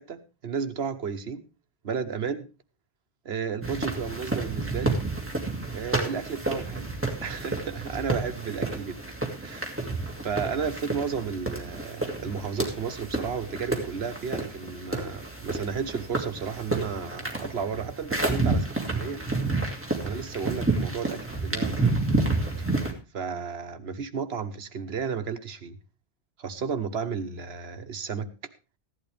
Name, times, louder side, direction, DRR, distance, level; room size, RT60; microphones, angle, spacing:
voice 1, 0.0-1.4 1.8-2.5 3.2-5.0 5.7-6.9 7.2-9.0 9.4-9.8 10.2-19.2 20.0-22.1 23.1-25.8 26.4-28.3, right 6 dB, 80° right, 9 dB, 1.3 m, -33 dB
sound 1, 3.6-22.9, right 2 dB, 10° right, 2.4 m, -30 dB
15.5 x 11.5 x 3.4 m, 0.31 s
omnidirectional pair, 1.1 m